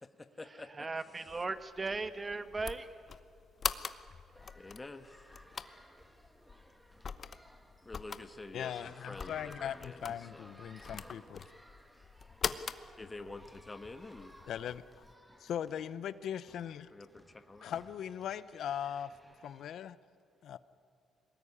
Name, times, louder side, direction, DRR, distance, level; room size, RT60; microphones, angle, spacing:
voice 1, 0.0-0.9 4.5-5.5 7.8-10.5 13.0-14.3 16.9-17.6, left 2 dB, 20° left, 9 dB, 1.3 m, -48 dB
voice 2, 0.7-3.0 3.9-4.0, right 3 dB, 25° right, 12 dB, 1.3 m, -37 dB
sound 1, 1.3-15.1, left 6 dB, 45° left, 0.9 m, -44 dB
sound 2, 4.3-19.7, equal, 5° right, 2.0 m, -59 dB
voice 3, 8.5-11.4 14.5-14.8 15.4-16.9 17.6-19.1 19.4-20.0 20.4-20.6, left 9 dB, 70° left, 16 dB, 0.7 m, -39 dB
22.5 x 19.5 x 9.8 m, 2.3 s
cardioid pair, 90°, 0 cm